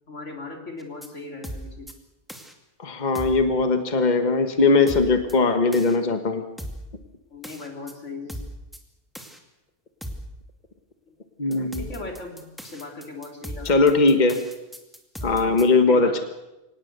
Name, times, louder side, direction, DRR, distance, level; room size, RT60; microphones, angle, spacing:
voice 1, 0.1-1.9 7.3-8.4 11.1-11.2 11.8-13.8 15.2-15.5 15.9-16.2, left 3 dB, 85° left, 2 dB, 3.5 m, -38 dB
sound 1, 0.8-1.1 1.4-1.9 2.3-2.5 3.1-3.5 4.9-5.3 5.7-6.0 6.6-6.9 7.4-7.9 8.3-8.8 9.1-9.4 10.0-10.3 11.5-15.6, equal, ahead, 2.4 m, -37 dB
voice 2, 2.8-6.4 11.4-11.8 13.6-14.4 15.2-16.2, left 3 dB, 40° left, 7 dB, 1.5 m, -20 dB
24.5 x 19.0 x 6.7 m, 0.98 s
omnidirectional pair, 1.2 m